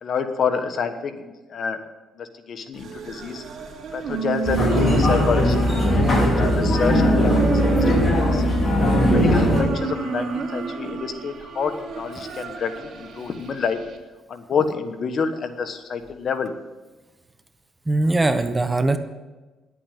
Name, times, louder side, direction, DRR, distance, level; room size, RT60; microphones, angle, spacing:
voice 1, 0.0-1.8 2.2-3.4 3.9-7.8 8.2-8.4 9.0-13.8 14.3-16.5, left 5 dB, 55° left, 8 dB, 1.3 m, -28 dB
sound 1, 2.7-14.0, right 6 dB, 65° right, 2.6 m, -30 dB
sound 2, 4.4-9.6, left 1 dB, 30° left, 4.6 m, -19 dB
voice 2, 17.9-19.0, right 2 dB, 20° right, 9 dB, 1.1 m, -21 dB
10.5 x 8.5 x 9.1 m, 1.2 s
cardioid pair, 90°, 0 cm